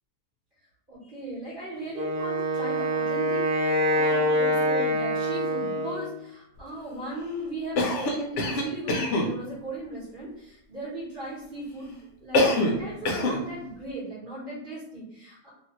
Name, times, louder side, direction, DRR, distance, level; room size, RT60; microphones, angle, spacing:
voice 1, 0.9-11.9 12.2-15.5, right 1 dB, 40° right, -10 dB, 1.1 m, -37 dB
Wind instrument woodwind instrument, 1.9-6.2, equal, 65° right, 1.1 m, -25 dB
Cough, 7.8-9.3 12.3-12.8 13.1-13.4, left 1 dB, 65° left, 0.8 m, -24 dB
2.8 x 2.4 x 2.9 m, 0.78 s
omnidirectional pair, 1.7 m